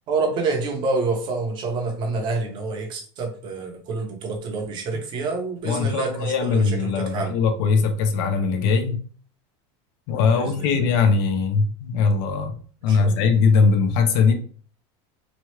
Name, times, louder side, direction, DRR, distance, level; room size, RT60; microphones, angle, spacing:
voice 1, 0.1-7.4 10.3-10.9 12.8-13.3, right 3 dB, 35° right, 2 dB, 0.7 m, -27 dB
voice 2, 5.6-9.0 10.1-12.6 12.8-14.3, left 5 dB, 60° left, 7 dB, 0.6 m, -20 dB
3.0 x 2.3 x 3.1 m, 0.43 s
supercardioid pair, 160°, 15 cm